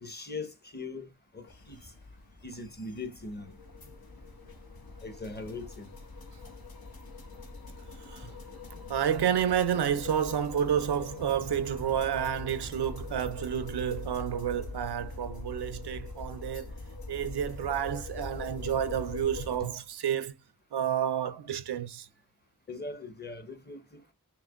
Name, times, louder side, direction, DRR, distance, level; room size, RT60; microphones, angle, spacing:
voice 1, 0.0-1.8 2.4-3.6 5.0-5.9 19.6-19.7 22.7-24.1, left 3 dB, 25° left, 1.1 m, -40 dB
sound 1, 1.5-19.6, left 3 dB, 65° left, 1.2 m, -43 dB
voice 2, 8.9-16.7 17.1-20.3 20.7-22.1, right 9 dB, 85° right, 0.6 m, -30 dB
5.8 x 2.1 x 3.6 m
cardioid pair, 55°, 39 cm